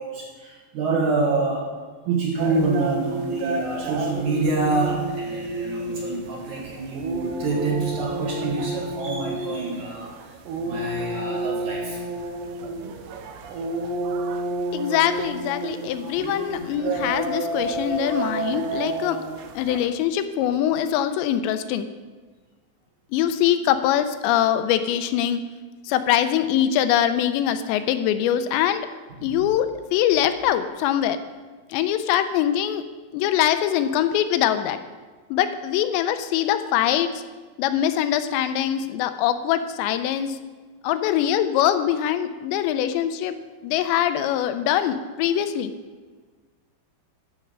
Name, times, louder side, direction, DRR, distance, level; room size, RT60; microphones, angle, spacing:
voice 1, 0.0-1.7 2.0-10.1 10.5-12.6 16.0-16.1 29.3-29.4, right 3 dB, 55° right, -3 dB, 2.5 m, -27 dB
sound 1, 2.4-19.9, right 2 dB, 85° right, 3.2 m, -30 dB
voice 2, 14.7-19.2 19.6-21.9 23.1-25.4 25.8-28.9 29.2-31.2 31.7-32.8 33.1-34.8 35.3-37.2 37.6-40.4 40.8-43.3 43.6-45.7, left 10 dB, 85° left, 10 dB, 2.9 m, -23 dB
12.5 x 5.7 x 6.7 m, 1.4 s
omnidirectional pair, 5.0 m